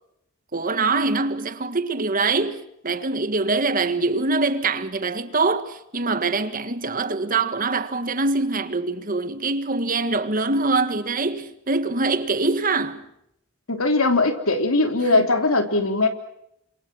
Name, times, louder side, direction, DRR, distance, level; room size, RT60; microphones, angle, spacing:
voice 1, 0.5-13.1 15.1-15.3, right 3 dB, 40° right, 1.7 m, -24 dB
voice 2, 13.7-16.1, left 2 dB, 80° left, 3.4 m, -20 dB
28.5 x 27.0 x 6.1 m
head